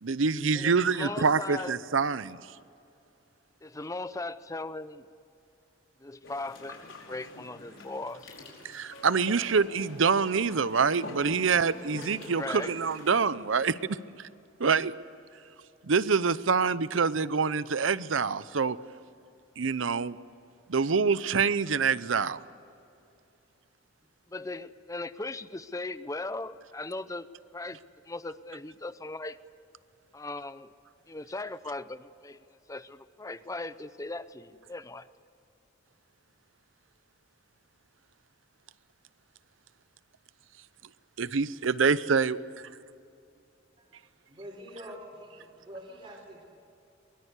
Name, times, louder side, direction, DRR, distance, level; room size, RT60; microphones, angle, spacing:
voice 1, 0.0-2.4 8.6-14.3 14.6-14.9 15.8-18.8 19.6-20.2 20.7-22.4 41.2-42.4, right 5 dB, 85° right, 16 dB, 0.7 m, -26 dB
voice 2, 0.5-1.7 3.6-5.1 6.0-8.4 12.4-12.7 24.3-27.3 27.5-27.8 28.0-29.4 30.1-30.7 31.1-35.1, left 2 dB, 15° left, 14 dB, 0.7 m, -38 dB
sound 1, 6.2-13.2, left 2 dB, 90° left, 5.1 m, -47 dB
sound 2, 8.9-13.6, left 1 dB, 45° left, 3.8 m, -49 dB
voice 3, 44.3-46.4, equal, 30° right, -2 dB, 4.0 m, -45 dB
23.0 x 21.5 x 8.2 m, 2.7 s
head